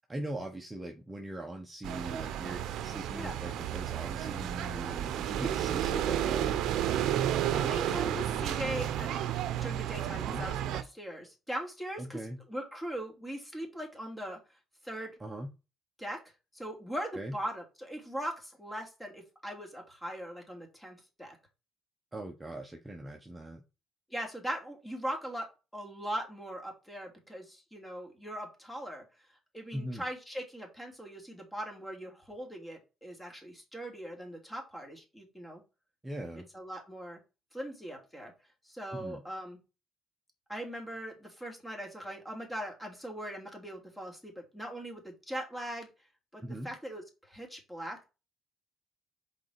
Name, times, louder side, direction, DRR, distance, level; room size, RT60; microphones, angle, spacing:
voice 1, 0.1-6.6 10.1-10.4 12.0-12.4 15.2-15.5 17.2-17.3 22.1-23.6 29.7-30.0 36.0-36.5 38.9-39.2 46.4-46.7, right 1 dB, 15° right, 2 dB, 1.2 m, -40 dB
sound 1, 1.8-10.8, right 11 dB, 75° right, 0.8 m, -32 dB
voice 2, 7.5-9.1 9.6-10.6 10.9-12.2 12.5-14.4 14.8-15.1 16.0-16.2 16.5-21.4 24.1-25.5 25.7-29.0 29.5-35.6 36.5-37.2 37.5-38.3 38.6-39.6 40.5-45.9 46.3-48.1, right 1 dB, 5° left, 1 dB, 2.9 m, -40 dB
5.3 x 4.4 x 4.8 m, 0.29 s
cardioid pair, 85°, 0 cm